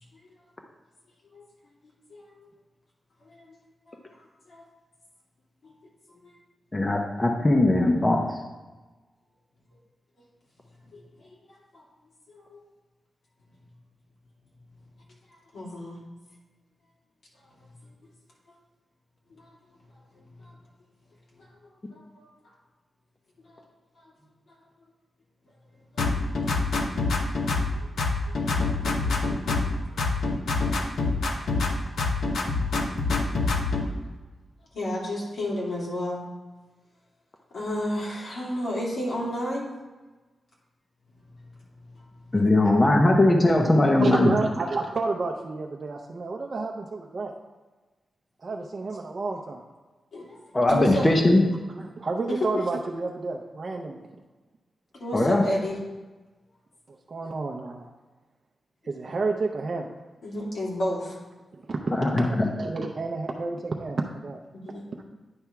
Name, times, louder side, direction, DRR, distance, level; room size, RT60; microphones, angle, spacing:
voice 1, 2.1-2.5 3.3-3.4 3.9-4.0 4.5-4.6 6.2-6.3 10.9-11.8 12.3-12.6 15.5-16.0 19.3-19.5 20.4-20.5 21.9-22.3 23.5-23.6 28.3-28.4 29.1-29.6 30.6-30.7 33.0-33.1 34.7-36.2 37.5-39.7 50.1-50.4 50.7-51.1 52.3-52.4 55.0-55.8 57.2-57.3 60.2-61.1 64.5-65.0, left 1 dB, 60° left, -5 dB, 2.8 m, -32 dB
voice 2, 6.7-8.2 42.3-44.3 50.5-51.5 55.1-55.4 61.9-62.4, left 2 dB, 20° left, 2 dB, 0.8 m, -20 dB
sound 1, 26.0-27.7 28.0-29.7 30.0-31.7 32.0-33.9, left 3 dB, 85° left, 0.9 m, -25 dB
voice 3, 43.6-47.3 48.4-49.6 51.8-54.0 56.9-57.9 58.8-59.9 61.5-64.4 65.0-65.1, right 3 dB, 40° right, 1 dB, 0.6 m, -30 dB
9.7 x 3.4 x 5.8 m, 1.2 s
wide cardioid pair, 135°, 0 cm